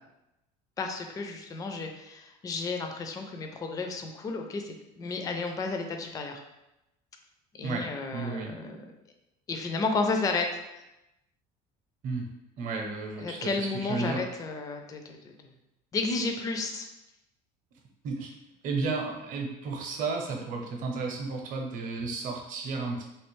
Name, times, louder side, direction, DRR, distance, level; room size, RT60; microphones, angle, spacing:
voice 1, 0.8-6.4 7.6-8.9 9.5-10.6 13.2-15.3 15.9-16.9, left 3 dB, 20° left, 4 dB, 0.4 m, -32 dB
voice 2, 8.1-8.5 12.0-12.3 12.6-14.2 18.0-18.3 18.6-23.0, right 4 dB, 50° right, 1 dB, 0.7 m, -33 dB
3.2 x 2.8 x 3.1 m, 0.91 s
cardioid pair, 130°, 17 cm